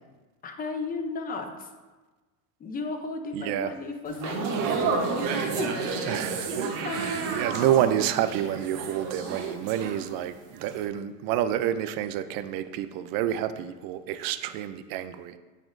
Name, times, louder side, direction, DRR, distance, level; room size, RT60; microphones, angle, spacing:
voice 1, 0.4-1.7 2.6-5.7 6.8-7.4, left 3 dB, 20° left, 6 dB, 0.5 m, -35 dB
voice 2, 3.3-3.7 6.1-15.4, right 11 dB, 50° right, 11 dB, 0.5 m, -28 dB
sound 1, 4.1-10.3 10.6-10.8, right 4 dB, 90° right, 1.0 m, -30 dB
9.0 x 4.2 x 2.5 m, 1.2 s
supercardioid pair, 130°, 45 cm